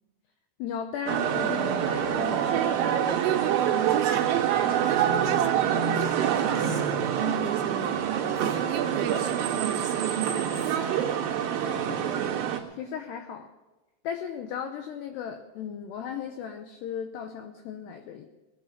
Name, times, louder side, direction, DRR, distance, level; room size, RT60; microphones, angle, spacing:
voice 1, 0.6-2.6 7.2-7.4 11.6-13.5 14.0-18.3, left 8 dB, 85° left, 6 dB, 2.4 m, -36 dB
sound 1, 1.1-12.6, right 9 dB, 60° right, 2.8 m, -26 dB
voice 2, 3.1-10.7, right 11 dB, 80° right, 6 dB, 3.3 m, -34 dB
Speech, 3.8-5.4 6.0-7.4 8.2-11.1, right 3 dB, 25° right, 2.5 m, -50 dB
20.0 x 9.6 x 6.5 m, 1.1 s
omnidirectional pair, 5.9 m